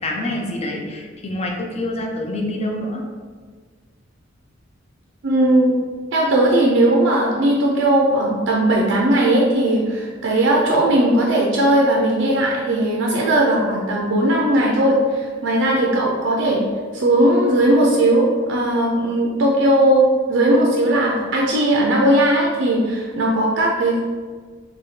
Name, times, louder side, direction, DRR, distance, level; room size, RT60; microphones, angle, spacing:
voice 1, 0.0-3.0, left 1 dB, 30° left, 0 dB, 0.5 m, -26 dB
voice 2, 5.2-5.7 6.1-16.6 16.9-24.0, right 1 dB, 70° right, -2 dB, 0.5 m, -18 dB
4.1 x 2.3 x 3.1 m, 1.6 s
head